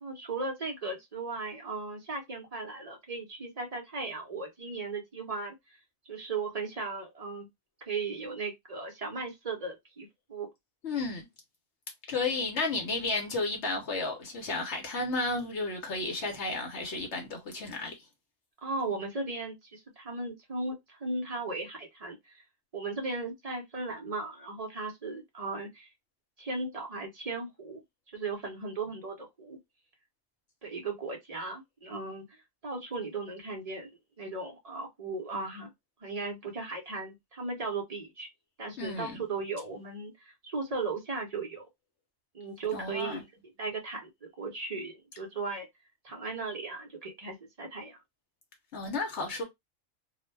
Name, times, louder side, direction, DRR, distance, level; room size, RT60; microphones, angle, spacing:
voice 1, 0.0-5.6 6.1-7.5 7.9-10.5 18.6-22.4 22.7-25.9 26.4-27.8 28.1-29.6 30.6-32.3 32.6-33.9 34.2-35.7 36.0-38.3 38.6-41.7 42.3-45.7 46.0-48.0, right 3 dB, 45° right, 0.5 m, -37 dB
voice 2, 10.8-11.3 12.1-17.9 38.8-39.2 42.7-43.2 48.7-49.4, left 3 dB, 65° left, 0.9 m, -32 dB
2.3 x 2.1 x 3.1 m
omnidirectional pair, 1.4 m